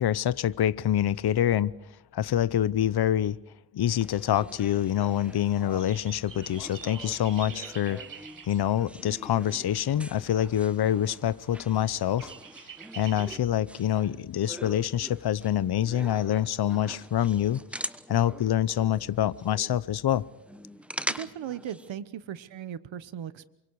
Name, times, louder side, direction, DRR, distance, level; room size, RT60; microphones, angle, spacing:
voice 1, 0.0-1.7 2.1-3.4 3.7-8.0 8.4-12.3 12.9-17.6 18.1-20.3, left 11 dB, 50° left, 0.8 m, -26 dB
sound 1, 3.9-21.9, equal, 5° right, 1.0 m, -43 dB
sound 2, 4.7-13.4, right 7 dB, 40° right, 1.4 m, -48 dB
voice 2, 21.0-23.5, right 9 dB, 70° right, 1.2 m, -38 dB
28.5 x 24.5 x 4.8 m
cardioid pair, 100°, 48 cm